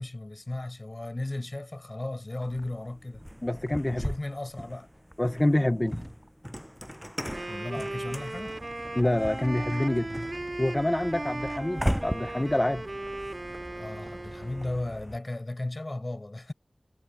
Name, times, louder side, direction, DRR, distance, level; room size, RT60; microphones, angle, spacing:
voice 1, 0.0-3.2 3.9-4.9 7.5-8.6 13.8-16.5, left 2 dB, 45° left, 7.9 m, -35 dB
sound 1, 2.4-15.2, equal, ahead, 7.9 m, -38 dB
voice 2, 3.4-4.0 5.2-6.0 9.0-10.3 10.6-12.8, left 1 dB, 25° left, 0.7 m, -26 dB
sound 2, 3.7-4.2 4.7-4.8 5.6-6.3 7.0-7.1 7.6-11.2, right 1 dB, 20° right, 3.4 m, -53 dB
Wind instrument woodwind instrument, 7.2-14.9, right 2 dB, 50° right, 2.8 m, -37 dB
wide cardioid pair, 40°, 0 cm